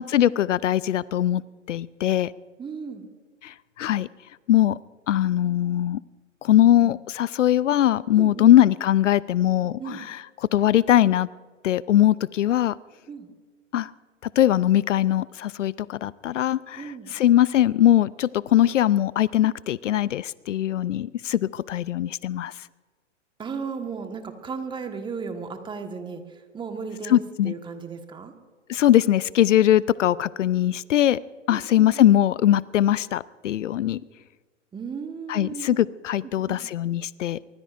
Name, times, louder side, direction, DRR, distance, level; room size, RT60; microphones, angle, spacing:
voice 1, 0.0-1.4 1.7-2.3 3.4-4.1 4.5-4.8 5.1-6.0 6.4-10.2 10.5-11.3 11.6-12.8 13.7-13.9 14.4-22.5 27.1-27.5 28.7-31.2 31.5-34.0 35.3-37.4, left 12 dB, 75° left, 21 dB, 0.5 m, -21 dB
voice 2, 2.6-3.1 6.5-6.9 8.2-8.5 9.8-10.0 13.1-13.3 16.8-17.1 23.4-26.2 26.5-28.3 31.5-31.9 34.7-35.8 36.2-36.6, right 5 dB, 10° right, 6 dB, 1.5 m, -35 dB
24.0 x 21.0 x 2.6 m, 1.4 s
hypercardioid pair, 120°, 38 cm